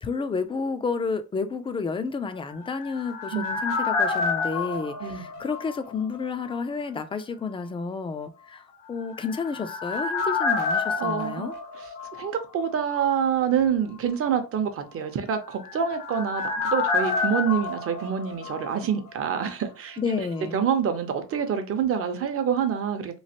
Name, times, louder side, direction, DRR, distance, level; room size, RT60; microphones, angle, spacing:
voice 1, 0.0-11.5 20.0-20.6, left 4 dB, 20° left, 0.3 m, -31 dB
sound 1, 2.4-6.2 6.5-6.6 9.0-12.7 12.9-13.0 15.3-19.2 19.4-19.5, left 4 dB, 85° left, 1.0 m, -29 dB
voice 2, 5.0-5.3 11.0-11.5 12.1-20.2 20.5-23.2, right 7 dB, 50° right, 0.7 m, -26 dB
3.1 x 2.4 x 2.8 m
cardioid pair, 115°, 30 cm